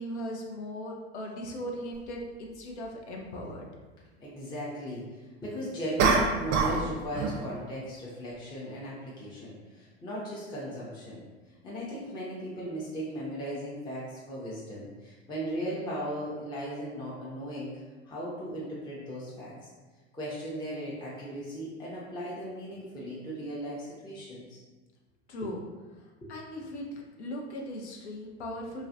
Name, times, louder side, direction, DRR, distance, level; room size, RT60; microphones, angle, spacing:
voice 1, 0.0-3.7 25.3-25.6 26.3-26.9 27.2-28.9, equal, 80° left, 0 dB, 0.5 m, -38 dB
sound 1, 1.9-2.0 6.0-6.9 7.1-7.5, right 4 dB, 40° right, 0.4 m, -24 dB
voice 2, 4.2-11.2 11.6-19.7 20.1-24.6 25.4-25.5 26.2-26.3, equal, 15° left, -7 dB, 0.5 m, -37 dB
2.3 x 2.1 x 2.6 m, 1.3 s
hypercardioid pair, 80°, 33 cm